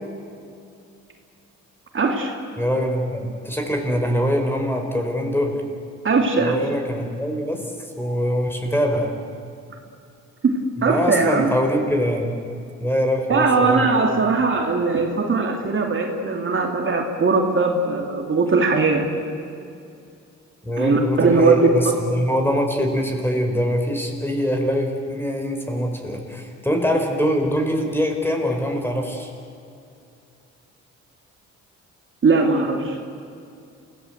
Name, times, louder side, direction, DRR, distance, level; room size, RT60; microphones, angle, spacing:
voice 1, 1.9-2.3 6.0-6.5 10.4-11.5 13.3-19.1 20.8-21.9 32.2-33.0, right 4 dB, 40° right, 2 dB, 2.9 m, -20 dB
voice 2, 2.6-5.5 6.4-9.1 10.9-12.4 12.8-13.9 20.6-29.3, equal, 5° left, 3 dB, 4.6 m, -23 dB
28.0 x 17.5 x 8.1 m, 2.5 s
cardioid pair, 90°, 30 cm